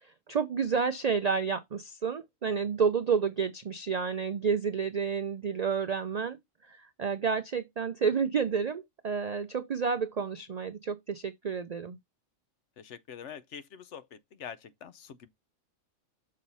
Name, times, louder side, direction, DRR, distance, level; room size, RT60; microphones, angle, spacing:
voice 1, 0.0-12.0, right 6 dB, 70° right, 0.3 m, -30 dB
voice 2, 12.8-15.3, left 8 dB, 65° left, 1.0 m, -45 dB
6.4 x 4.2 x 5.4 m
omnidirectional pair, 1.4 m